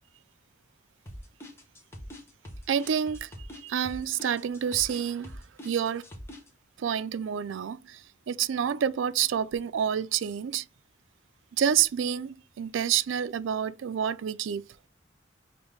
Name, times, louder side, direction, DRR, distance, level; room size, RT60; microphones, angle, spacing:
sound 1, 1.1-6.5, left 1 dB, 15° left, 0.8 m, -44 dB
voice 1, 2.7-3.3 3.6-5.3 5.6-6.0 6.8-8.0 8.3-10.6 11.6-14.6, right 8 dB, 90° right, 0.4 m, -28 dB
5.1 x 2.6 x 3.2 m
head